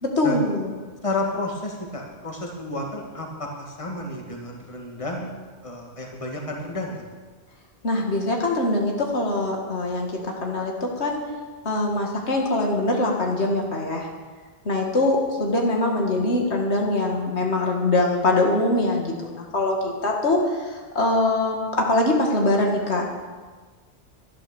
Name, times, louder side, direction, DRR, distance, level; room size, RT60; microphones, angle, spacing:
voice 1, 0.0-0.7 7.8-11.2 11.7-14.1 14.7-23.1, left 2 dB, 90° left, 0 dB, 2.3 m, -23 dB
voice 2, 1.0-5.3 5.6-7.0, left 2 dB, 30° left, 0 dB, 2.1 m, -31 dB
11.5 x 11.0 x 7.0 m, 1.4 s
omnidirectional pair, 1.1 m